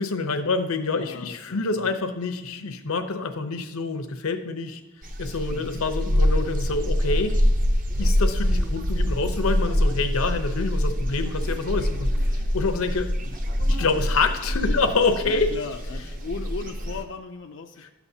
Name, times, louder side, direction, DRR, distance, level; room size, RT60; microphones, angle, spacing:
voice 1, 0.0-4.8 5.2-7.4 8.0-13.1 13.7-15.5, left 3 dB, 80° left, 7 dB, 0.8 m, -27 dB
voice 2, 0.9-1.9 5.5-5.8 13.2-13.4 13.7-13.8 14.1-14.3 14.7-14.8 15.3-17.9, left 4 dB, 55° left, 2 dB, 0.4 m, -37 dB
sound 1, 5.0-17.0, equal, 40° right, 0.7 m, -25 dB
12.0 x 7.1 x 2.7 m, 0.99 s
head